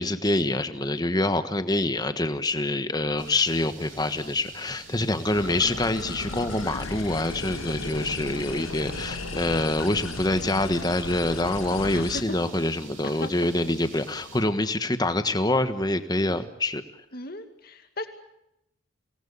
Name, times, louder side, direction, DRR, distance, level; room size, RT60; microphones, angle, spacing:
voice 1, 0.0-16.8, left 2 dB, 20° left, 10 dB, 1.3 m, -26 dB
sound 1, 3.2-14.4, right 4 dB, 75° right, 7.4 m, -47 dB
voice 2, 5.3-5.7 11.9-12.4 13.0-13.3 17.1-18.1, left 2 dB, 45° left, 7 dB, 2.4 m, -37 dB
sound 2, 5.4-12.2, left 2 dB, 90° left, 2.1 m, -35 dB
25.5 x 19.5 x 8.5 m, 0.84 s
head